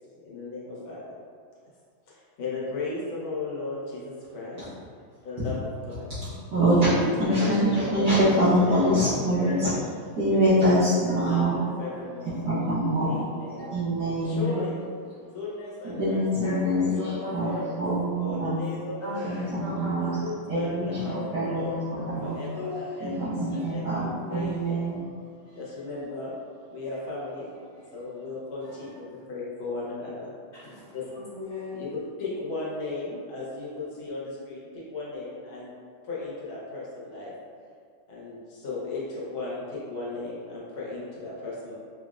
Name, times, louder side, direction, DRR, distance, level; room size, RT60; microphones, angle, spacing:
voice 1, 0.2-1.0 2.1-4.6 5.2-6.1 6.5-8.9 10.3-10.8 11.2-12.4 13.0-13.7 14.2-14.8 15.3-16.2 17.0-17.8 18.2-19.5 20.0-21.8 22.2-24.0 24.3-24.8 25.5-26.3 26.7-27.5 27.9-30.3 30.9-31.0 31.7-31.9 32.2-35.7 36.0-37.3 38.1-41.7, left 3 dB, 75° left, -6 dB, 1.7 m, -36 dB
voice 2, 6.5-6.9 7.2-9.7 10.2-11.6 12.5-13.2 13.7-14.5 15.8-17.0 17.3-18.6 19.2-20.2 20.5-22.3 23.0-25.0, equal, 60° right, -13 dB, 1.3 m, -24 dB
voice 3, 9.3-9.7 11.1-12.2 13.0-13.1 13.6-13.8 14.2-15.3 16.3-17.9 19.0-20.2 21.0-21.4 22.0-23.6 23.9-25.0 25.4-25.8 26.8-27.0 27.6-27.9 28.6-29.0 30.5-30.8 31.1-31.9, left 2 dB, 60° left, -11 dB, 1.6 m, -38 dB
5.3 x 2.0 x 2.4 m, 2.1 s
omnidirectional pair, 2.3 m